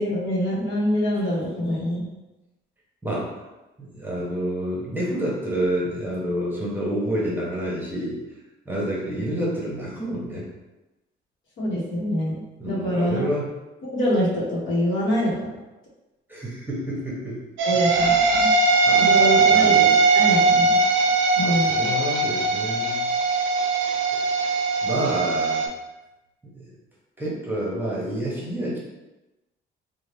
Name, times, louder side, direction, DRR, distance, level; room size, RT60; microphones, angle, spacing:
voice 1, 0.0-2.1 11.6-13.2 13.8-15.5 17.6-18.5 19.0-20.8 21.4-21.9, equal, 70° left, -5 dB, 1.0 m, -25 dB
voice 2, 3.8-8.2 8.7-10.5 12.6-13.5 16.3-17.4 18.8-19.8 21.4-23.1 24.1-24.4 24.8-25.7 27.2-28.8, right 1 dB, 10° right, -6 dB, 1.0 m, -28 dB
sound 1, 17.6-25.7, right 4 dB, 75° right, 0.5 m, -20 dB
2.8 x 2.2 x 3.2 m, 1.0 s
cardioid pair, 90°, 20 cm